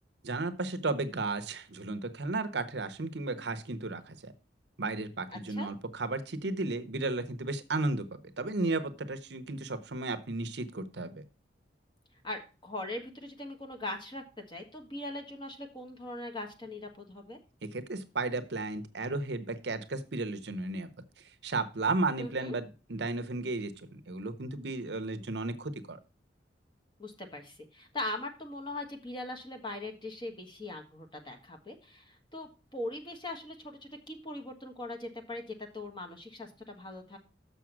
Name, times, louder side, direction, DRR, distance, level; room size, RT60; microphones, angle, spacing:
voice 1, 0.2-4.3 4.8-11.2 17.6-20.9 21.4-26.0, right 2 dB, 65° right, 10 dB, 0.8 m, -34 dB
voice 2, 5.3-5.7 12.2-17.4 22.2-22.5 27.0-37.2, left 2 dB, 25° left, 3 dB, 1.5 m, -40 dB
6.8 x 6.2 x 5.9 m, 0.33 s
head